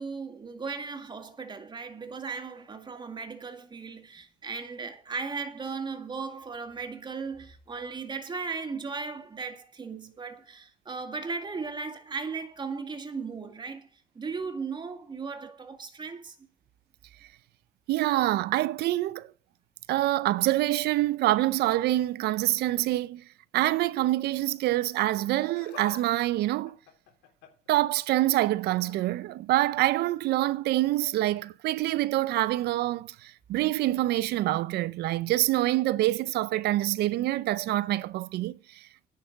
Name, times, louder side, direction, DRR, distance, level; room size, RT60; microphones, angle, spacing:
voice 1, 0.0-16.4, right 4 dB, 25° right, 2.2 m, -37 dB
voice 2, 17.9-19.3 19.9-23.2 23.5-26.7 27.7-39.1, right 16 dB, 75° right, 0.6 m, -26 dB
Laughter, 25.2-26.0 26.3-27.7 28.6-29.0 30.3-30.5 31.4-31.5, left 9 dB, 85° left, 3.8 m, -49 dB
10.0 x 6.7 x 7.7 m
cardioid pair, 110°, 17 cm